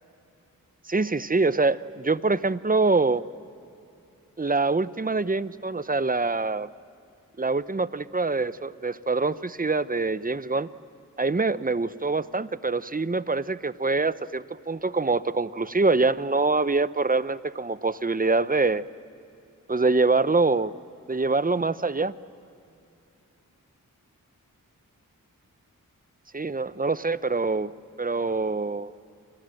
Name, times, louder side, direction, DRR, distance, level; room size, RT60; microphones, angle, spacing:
voice 1, 0.9-3.2 4.4-6.7 7.4-10.7 11.2-18.8 19.7-20.7 21.1-22.1 26.3-27.7 28.0-28.9, right 3 dB, 25° right, 15 dB, 0.9 m, -25 dB
29.5 x 24.5 x 7.8 m, 2.7 s
cardioid pair, 45°, 35 cm